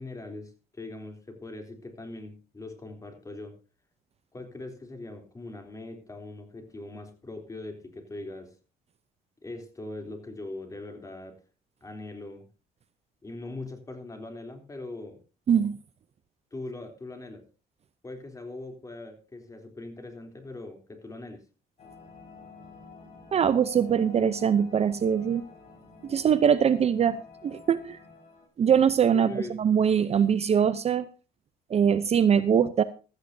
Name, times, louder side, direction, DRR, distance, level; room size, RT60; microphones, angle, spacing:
voice 1, 0.0-3.6 4.3-8.5 9.4-11.4 11.8-12.5 13.2-15.2 16.5-17.4 18.0-21.4 29.1-29.5, left 2 dB, 20° left, 4 dB, 3.3 m, -41 dB
sound 1, 21.8-28.5, left 4 dB, 45° left, 5.1 m, -49 dB
voice 2, 23.3-25.4 26.0-28.0 28.6-31.1 31.7-32.8, right 8 dB, 40° right, 13 dB, 0.7 m, -22 dB
16.0 x 13.5 x 2.7 m, 0.33 s
cardioid pair, 110°, 17 cm